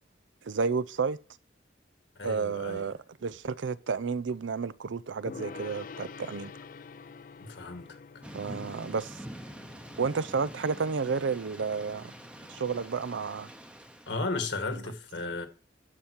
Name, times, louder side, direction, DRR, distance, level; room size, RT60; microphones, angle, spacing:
voice 1, 0.4-1.2 2.2-6.5 8.3-9.2 10.0-12.1 12.5-13.5 14.7-14.8, right 5 dB, 90° right, 0.5 m, -31 dB
voice 2, 2.2-2.9 7.4-8.0 14.1-15.5, left 3 dB, 70° left, 1.6 m, -34 dB
Gong, 5.3-12.7, left 5 dB, 45° left, 0.4 m, -48 dB
Thunder / Rain, 8.2-14.2, equal, 5° right, 0.8 m, -46 dB
12.5 x 5.1 x 4.5 m
head